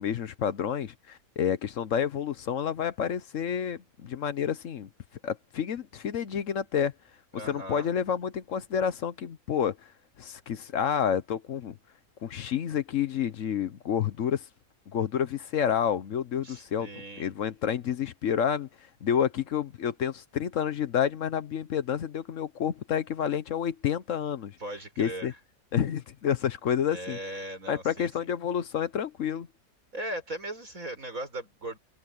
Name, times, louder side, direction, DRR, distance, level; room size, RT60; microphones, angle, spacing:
voice 1, 0.0-4.9 5.2-6.9 7.3-9.9 10.2-11.8 12.2-14.5 14.9-16.9 17.2-18.7 19.0-24.6 25.0-25.3 25.7-27.2 27.7-29.5, left 8 dB, 65° left, 1.2 m, -29 dB
voice 2, 7.3-7.9 16.4-17.3 24.6-25.4 26.9-28.1 29.9-31.8, right 1 dB, 70° right, 6.6 m, -38 dB
open air
omnidirectional pair, 1.5 m